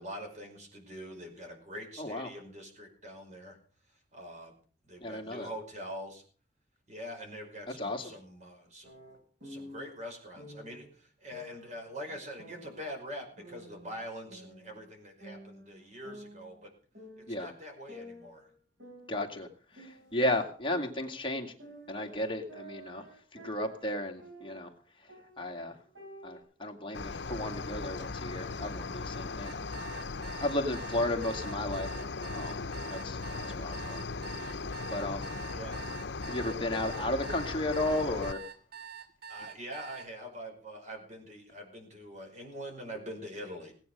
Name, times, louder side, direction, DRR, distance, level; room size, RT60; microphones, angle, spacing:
voice 1, 0.0-3.6 4.1-4.5 4.9-6.2 6.9-9.0 9.4-16.7 17.4-18.5 29.9-30.1 35.5-35.8 39.3-43.7, equal, 40° right, 3 dB, 5.2 m, -44 dB
voice 2, 2.0-2.3 5.0-5.5 7.8-8.1 17.3-17.5 19.1-19.5 19.7-21.5 21.9-23.1 23.3-24.7 25.4-25.8 26.2-29.5 30.4-31.9 32.3-33.2 33.6-34.0 34.9-35.3 36.3-38.4, left 1 dB, 30° left, 3 dB, 2.2 m, -34 dB
sound 1, 8.8-9.9 10.4-10.8 11.3-12.9 13.4-14.9 15.2-16.7 16.9-17.5 17.9-20.3 20.7-24.8 25.1-26.4, equal, 75° right, 5.9 m, -50 dB
Cricket, 26.9-38.3, left 4 dB, 70° left, 0.8 m, -38 dB
sound 2, 29.4-40.1, right 7 dB, 60° right, 2.6 m, -46 dB
18.5 x 8.9 x 6.7 m, 0.43 s
head